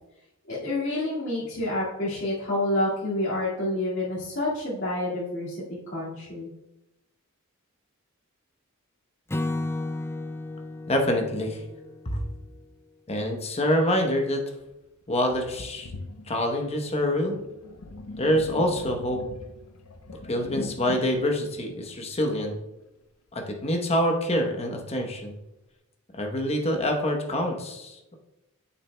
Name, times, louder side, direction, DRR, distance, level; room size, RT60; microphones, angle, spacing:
voice 1, 0.5-5.6 5.9-6.5, left 1 dB, 55° left, -10 dB, 2.1 m, -28 dB
Acoustic guitar / Strum, 9.3-12.6, left 2 dB, 10° left, 0.3 m, -33 dB
voice 2, 10.9-11.6 12.0-12.2 13.1-14.4 15.1-15.9 16.3-17.4 18.2-19.2 20.3-22.5 23.3-25.3 26.1-28.2, equal, 30° left, 2 dB, 1.0 m, -26 dB
Sink (filling or washing), 14.6-14.7 15.3-22.6, left 2 dB, 85° left, 0.7 m, -42 dB
8.6 x 6.9 x 2.3 m, 0.97 s
head